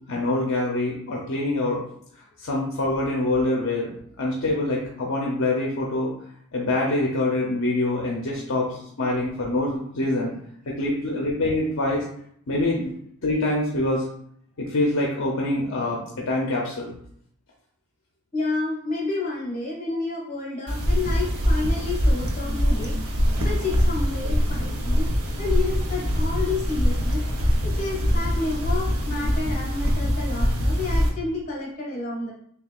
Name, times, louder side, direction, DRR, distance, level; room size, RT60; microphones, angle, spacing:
voice 1, 0.1-1.8 2.4-6.1 6.5-10.3 10.7-12.0 12.5-12.9 13.2-14.0 14.6-16.9, left 2 dB, 65° left, -2 dB, 0.7 m, -25 dB
voice 2, 18.3-23.0 23.4-27.2 27.6-32.3, left 3 dB, 35° left, -4 dB, 1.6 m, -30 dB
sound 1, 20.7-31.1, equal, 80° right, 0.8 m, -23 dB
6.5 x 2.3 x 2.4 m, 0.67 s
head